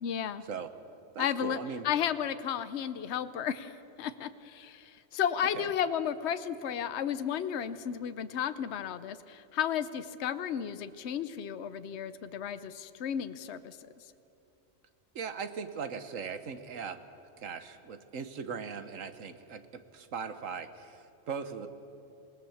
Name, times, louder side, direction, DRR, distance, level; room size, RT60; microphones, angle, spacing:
voice 1, 0.0-0.4 1.2-1.6 1.8-3.7 4.0-13.8, left 9 dB, 60° left, 12 dB, 1.0 m, -33 dB
voice 2, 1.1-1.9 5.5-5.7 15.1-17.0 17.4-21.7, right 6 dB, 80° right, 10 dB, 1.5 m, -39 dB
27.0 x 18.5 x 7.2 m, 2.8 s
omnidirectional pair, 1.3 m